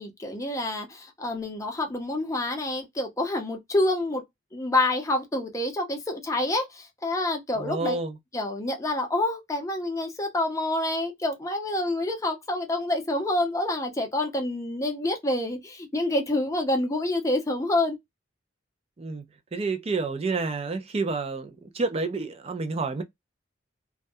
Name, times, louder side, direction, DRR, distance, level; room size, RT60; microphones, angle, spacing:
voice 1, 0.0-4.2 4.5-8.0 8.3-18.0, left 1 dB, 15° left, 0.6 m, -27 dB
voice 2, 7.6-8.1 19.0-19.2 19.5-21.5 21.8-23.0, right 3 dB, 30° right, 0.4 m, -29 dB
2.3 x 2.2 x 2.6 m
head